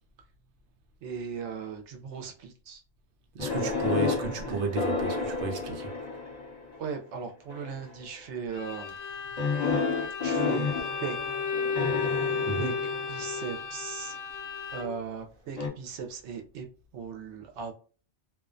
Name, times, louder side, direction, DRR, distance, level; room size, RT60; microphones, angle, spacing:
voice 1, 1.0-2.8 3.5-3.8 4.1-4.7 6.8-9.0 10.2-10.7 11.0-11.2 11.6-11.7 12.6-12.7 13.1-14.2 14.7-16.7 16.9-17.7, right 6 dB, 90° right, 0.9 m, -38 dB
voice 2, 3.3-5.9 12.5-12.7, right 3 dB, 60° right, 0.7 m, -32 dB
sound 1, 3.4-6.8 7.5-8.0 9.4-13.5 15.6-15.7, left 4 dB, 40° left, 1.1 m, -31 dB
Bowed string instrument, 8.5-15.1, left 5 dB, 90° left, 0.9 m, -33 dB
2.4 x 2.1 x 2.4 m
omnidirectional pair, 1.2 m